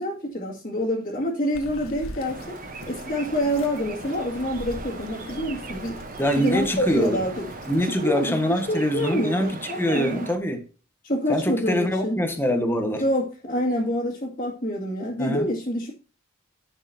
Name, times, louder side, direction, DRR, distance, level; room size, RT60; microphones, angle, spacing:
voice 1, 0.0-2.6 2.9-6.0 6.4-7.5 7.8-8.4 8.7-10.3 11.0-12.2 12.9-15.9, equal, 35° left, 2.3 m, -27 dB
Bird vocalization bird call bird song, 1.5-7.8, left 1 dB, 80° left, 1.5 m, -42 dB
sound 1, 2.2-10.4, right 3 dB, 40° right, 1.0 m, -39 dB
voice 2, 6.2-7.2 7.7-10.6 11.3-13.0 15.2-15.5, equal, 10° left, 1.4 m, -24 dB
11.0 x 6.7 x 2.9 m
head